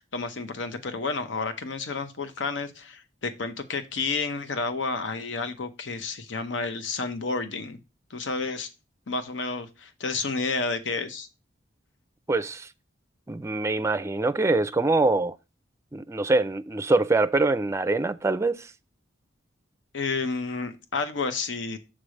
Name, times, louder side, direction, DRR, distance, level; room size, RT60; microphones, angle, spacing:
voice 1, 0.0-7.8 8.1-8.7 9.1-11.3 19.9-21.8, left 4 dB, 85° left, 0.8 m, -30 dB
voice 2, 12.3-12.7 13.3-15.4 15.9-18.7, right 2 dB, 15° right, 0.4 m, -24 dB
7.4 x 3.3 x 6.2 m
head